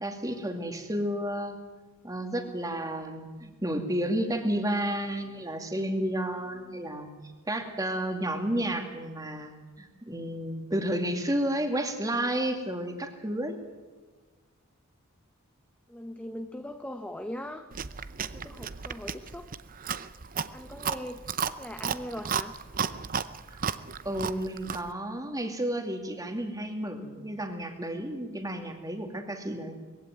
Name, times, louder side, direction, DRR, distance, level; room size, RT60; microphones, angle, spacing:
voice 1, 0.0-1.6 2.0-7.1 7.5-13.6 24.0-29.7, right 1 dB, 15° right, 4 dB, 2.3 m, -31 dB
voice 2, 15.9-17.7 18.3-19.5 20.5-21.2 21.5-22.5, left 1 dB, 5° left, 6 dB, 0.8 m, -40 dB
Chewing mastication, 17.7-24.9, right 7 dB, 40° right, 0.7 m, -34 dB
20.5 x 16.0 x 9.2 m, 1.3 s
head